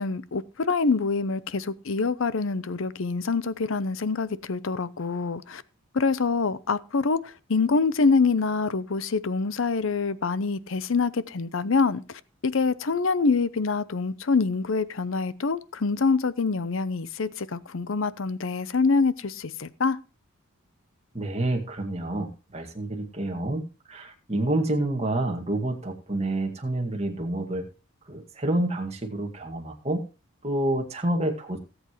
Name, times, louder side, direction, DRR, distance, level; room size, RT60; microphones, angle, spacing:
voice 1, 0.0-5.6 5.9-20.0, left 4 dB, 65° left, 0.6 m, -25 dB
voice 2, 21.1-23.6 23.9-27.7 28.1-30.0 30.4-31.6, right 1 dB, 30° right, 2.0 m, -28 dB
18.0 x 8.0 x 3.1 m
head